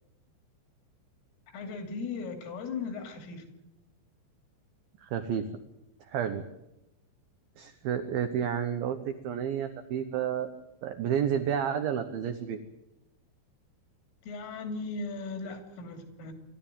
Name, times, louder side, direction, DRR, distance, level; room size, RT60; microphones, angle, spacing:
voice 1, 1.5-3.5 14.2-16.3, left 4 dB, 85° left, 5 dB, 5.3 m, -37 dB
voice 2, 5.0-5.5 6.1-6.4 7.6-10.5 10.8-12.6, right 8 dB, 80° right, 8 dB, 2.1 m, -30 dB
26.5 x 12.5 x 9.0 m, 0.91 s
omnidirectional pair, 5.7 m